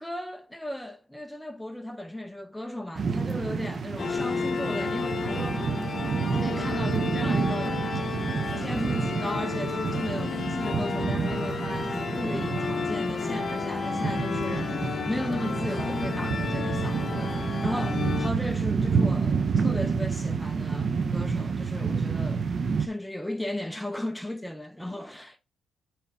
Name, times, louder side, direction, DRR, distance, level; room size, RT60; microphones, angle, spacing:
voice 1, 0.0-5.7 6.3-8.0 8.6-14.7 15.1-22.4 22.8-25.4, left 1 dB, 5° left, 0.4 m, -36 dB
sound 1, 3.0-22.9, right 5 dB, 45° right, 0.5 m, -29 dB
sound 2, 4.0-18.3, left 5 dB, 45° left, 0.8 m, -32 dB
8.5 x 3.3 x 4.1 m
cardioid pair, 90°, 0 cm